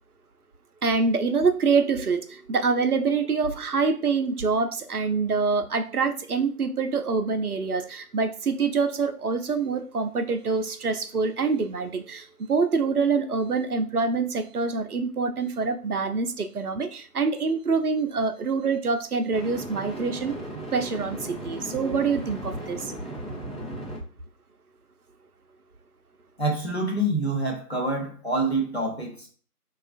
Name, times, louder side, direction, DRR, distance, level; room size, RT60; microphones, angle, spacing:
voice 1, 0.8-20.4 20.7-22.9, right 4 dB, 70° right, 0.5 m, -25 dB
sound 1, 14.4-14.6 19.3-24.0, right 1 dB, ahead, 0.6 m, -37 dB
voice 2, 26.4-29.3, right 1 dB, 45° left, 0.8 m, -26 dB
5.0 x 2.3 x 2.4 m
figure-of-eight pair, 175°, 47 cm